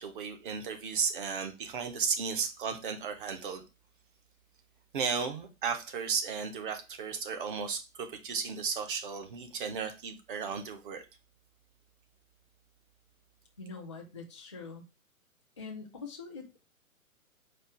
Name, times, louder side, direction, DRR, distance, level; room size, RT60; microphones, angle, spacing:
voice 1, 0.0-3.6 4.9-11.0, right 6 dB, 35° right, 0.8 m, -34 dB
voice 2, 13.6-14.8 15.6-16.6, left 4 dB, 25° left, 0.3 m, -44 dB
4.3 x 2.4 x 4.7 m
figure-of-eight pair, 130°, 42 cm